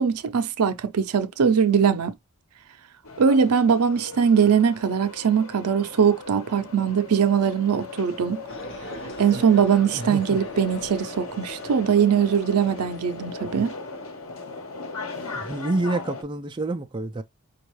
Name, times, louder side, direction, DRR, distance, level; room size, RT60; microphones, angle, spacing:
voice 1, 0.0-2.1 3.2-8.4 9.2-13.7, right 7 dB, 85° right, 0.5 m, -21 dB
sound 1, 3.0-16.2, left 3 dB, 75° left, 1.2 m, -39 dB
sound 2, 8.5-13.5, equal, 55° left, 1.1 m, -40 dB
voice 2, 9.9-10.4 15.4-17.2, right 2 dB, 20° right, 0.3 m, -28 dB
5.2 x 2.3 x 3.0 m
head